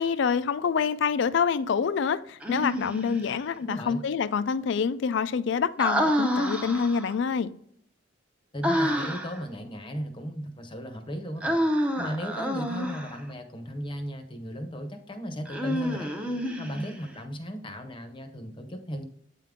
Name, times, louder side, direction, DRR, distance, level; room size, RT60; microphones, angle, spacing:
voice 1, 0.0-7.6, left 6 dB, 65° left, 0.4 m, -26 dB
Human voice, 2.4-3.3 5.8-7.1 8.6-9.4 11.4-13.2 15.5-17.1, equal, 5° right, 0.6 m, -28 dB
voice 2, 3.6-4.0 8.5-16.1 16.6-19.0, equal, 25° left, 0.7 m, -36 dB
8.4 x 3.7 x 3.6 m
head